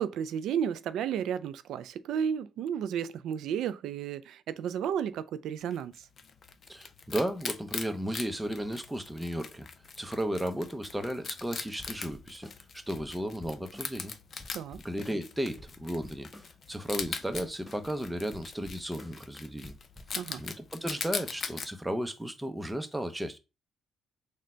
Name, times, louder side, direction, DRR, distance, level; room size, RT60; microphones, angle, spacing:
voice 1, 0.0-6.1 14.5-14.8 20.1-20.4, right 8 dB, 80° right, 0.3 m, -33 dB
Wild animals, 5.7-21.7, left 5 dB, 50° left, 0.5 m, -41 dB
voice 2, 6.7-9.7 10.0-12.5 12.7-14.1 14.8-16.3 16.7-19.8 20.4-23.4, equal, 10° right, 0.6 m, -34 dB
sound 1, 7.9-8.0 8.2-8.3 8.6-8.7 8.9-9.0 9.2-9.3 9.5-9.6 9.8-9.9 10.2-10.3 10.5-10.6 10.8-11.2 11.5-11.6 11.8-14.1 14.4-16.7 17.0-18.0 18.3-19.4 19.6-20.2, left 1 dB, 10° left, 1.1 m, -53 dB
3.8 x 2.2 x 4.3 m
cardioid pair, 90°, 0 cm